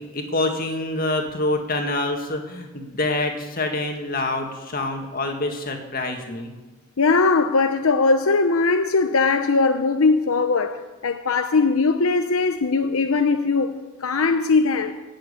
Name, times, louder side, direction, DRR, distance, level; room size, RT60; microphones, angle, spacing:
voice 1, 0.0-6.5, left 2 dB, 40° left, 2.0 m, -26 dB
voice 2, 7.0-15.0, left 4 dB, 80° left, 0.7 m, -20 dB
18.0 x 7.6 x 8.4 m
head